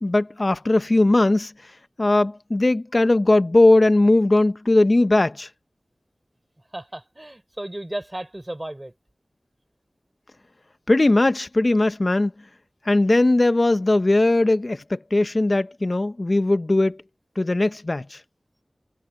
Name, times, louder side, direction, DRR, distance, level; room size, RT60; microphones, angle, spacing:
voice 1, 0.0-1.5 2.0-5.5 10.9-12.3 12.9-17.0 17.4-18.2, left 2 dB, 45° left, 0.6 m, -19 dB
voice 2, 6.7-8.9, right 1 dB, 25° right, 4.6 m, -34 dB
wide cardioid pair, 40°, 0 cm